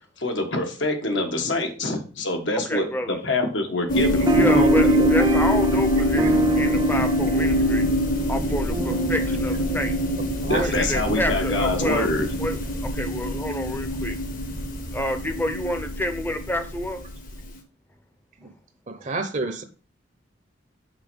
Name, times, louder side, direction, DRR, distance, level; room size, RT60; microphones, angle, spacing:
voice 1, 0.2-4.6 10.5-12.3, left 2 dB, 75° left, 4 dB, 1.4 m, -25 dB
voice 2, 2.5-3.2 4.3-7.9 8.3-10.0 10.5-12.1 12.4-14.2 14.9-17.1 19.0-19.1, left 1 dB, 10° left, 8 dB, 0.7 m, -29 dB
sound 1, 3.9-17.3, equal, 45° left, 1.1 m, -24 dB
sound 2, 4.3-11.1, right 1 dB, 20° right, 0.3 m, -25 dB
voice 3, 4.3-5.1 6.2-6.3 10.4-10.7 18.4-18.5 18.9-19.6, right 2 dB, 40° right, 8 dB, 0.8 m, -28 dB
5.8 x 4.3 x 5.2 m, 0.37 s
head